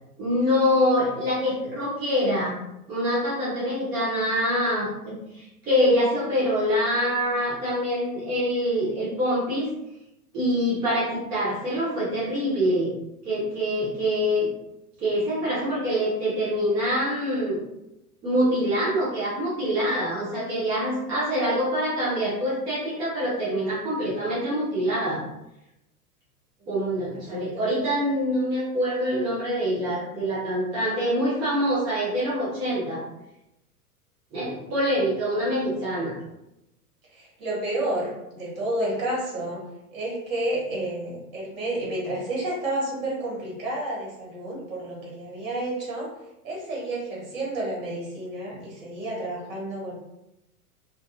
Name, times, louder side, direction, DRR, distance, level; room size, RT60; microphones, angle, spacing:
voice 1, 0.2-2.6 2.9-9.7 10.3-12.9 13.2-14.5 15.0-17.6 18.2-25.2 26.7-33.0 34.3-36.1, equal, 10° right, -9 dB, 0.4 m, -25 dB
voice 2, 27.3-27.8 35.3-36.1 37.1-39.6 39.9-46.1 46.4-49.9, right 1 dB, 55° right, -4 dB, 1.4 m, -31 dB
2.4 x 2.2 x 2.5 m, 0.90 s
figure-of-eight pair, 95°, 46 cm